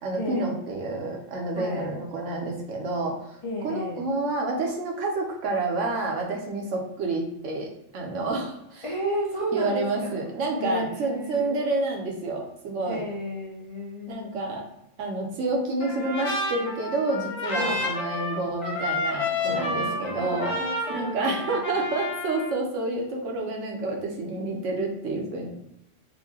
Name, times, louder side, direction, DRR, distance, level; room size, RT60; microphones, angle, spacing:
voice 1, 0.0-3.4 3.6-8.8 9.5-13.0 14.1-14.6 15.0-20.5 20.9-25.5, right 2 dB, 75° right, 1 dB, 1.1 m, -29 dB
voice 2, 1.5-1.9 3.4-4.0 8.8-10.2 10.6-11.6 12.9-14.3 17.5-17.9 19.5-21.8, equal, 35° left, -5 dB, 0.5 m, -33 dB
Trumpet, 15.8-22.5, left 2 dB, 85° left, 1.3 m, -30 dB
4.4 x 2.2 x 2.7 m, 0.83 s
omnidirectional pair, 1.3 m